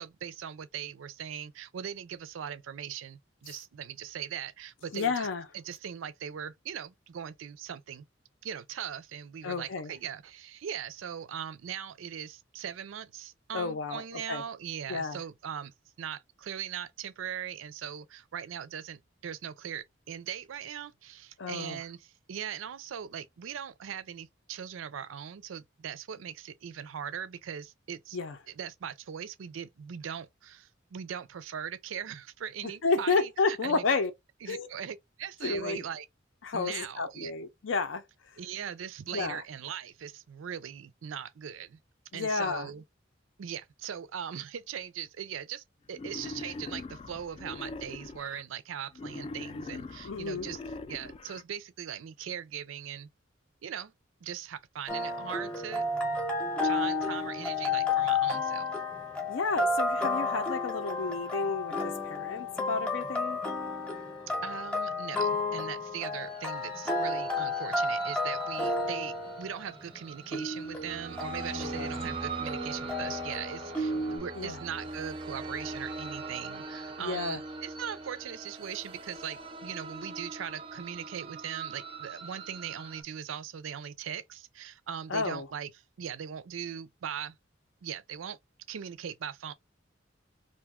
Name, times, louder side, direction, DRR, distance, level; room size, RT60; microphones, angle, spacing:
voice 1, 0.0-5.3 5.5-8.0 8.4-15.7 16.0-28.2 28.5-33.8 34.4-36.1 36.5-37.3 38.4-41.8 42.1-42.8 43.4-50.6 50.9-53.1 53.6-53.9 54.2-55.9 56.6-58.7 64.4-85.7 86.0-87.4 87.8-88.4 88.7-89.5, right 8 dB, 90° right, 0.4 m, -40 dB
voice 2, 4.9-5.4 9.4-9.9 13.5-14.4 14.9-15.2 21.4-21.8 28.1-28.4 32.8-34.1 34.5-34.7 35.4-35.8 36.4-38.0 39.1-39.4 42.1-42.7 50.0-50.5 59.3-63.4 71.5-71.9 74.3-74.6 77.0-77.4 85.1-85.5, left 4 dB, 80° left, 0.6 m, -31 dB
Wild animals, 45.9-48.4 48.9-51.4, left 3 dB, 30° left, 0.3 m, -41 dB
sound 1, 54.9-74.2, left 3 dB, 5° left, 0.7 m, -32 dB
sound 2, 66.2-83.0, right 3 dB, 25° right, 0.5 m, -41 dB
2.6 x 2.2 x 3.5 m
head